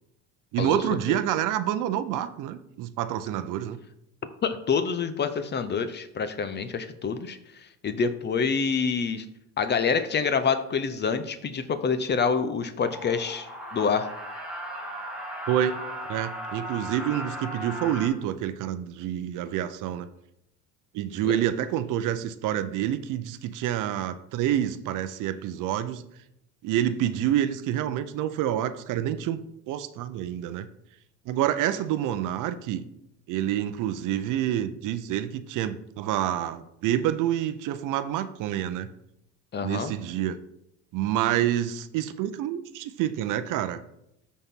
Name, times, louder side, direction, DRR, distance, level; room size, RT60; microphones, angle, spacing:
voice 1, 0.5-3.8 15.5-15.8 16.1-20.1 20.9-26.0 26.6-29.4 29.7-30.7 31.3-32.9 33.3-38.9 39.6-40.4 40.9-43.8, right 11 dB, 60° right, 11 dB, 0.7 m, -28 dB
voice 2, 4.4-7.4 7.8-9.2 9.6-13.5 13.7-14.1 21.2-21.3 39.5-39.9, left 5 dB, 30° left, 11 dB, 0.6 m, -26 dB
sound 1, 12.8-18.1, equal, 5° right, 1.9 m, -37 dB
12.5 x 4.3 x 3.7 m, 0.80 s
supercardioid pair, 110°, 36 cm